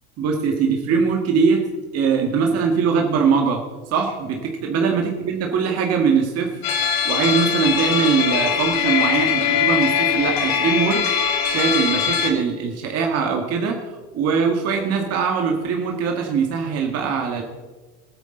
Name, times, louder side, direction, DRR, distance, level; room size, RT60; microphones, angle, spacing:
voice 1, 0.2-1.6 1.9-3.6 3.9-6.7 7.0-13.8 14.1-17.4, right 5 dB, 45° right, 2 dB, 1.9 m, -21 dB
sound 1, 6.6-12.3, left 8 dB, 65° left, 2.1 m, -21 dB
19.0 x 9.1 x 3.9 m, 1.3 s
supercardioid pair, 110°, 33 cm